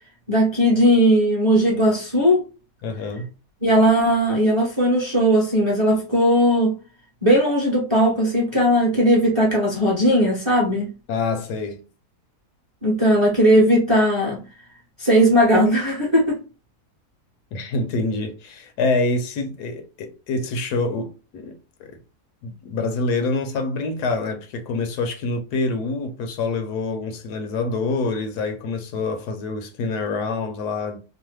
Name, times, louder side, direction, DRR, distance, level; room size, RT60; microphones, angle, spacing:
voice 1, 0.3-2.4 3.6-6.7 7.2-10.9 12.8-14.4 15.0-16.4, equal, 25° right, 0.6 m, -18 dB
voice 2, 2.8-3.3 11.1-11.8 17.5-22.0 22.4-31.0, left 3 dB, 80° left, 1.2 m, -26 dB
3.1 x 2.0 x 3.1 m
omnidirectional pair, 1.7 m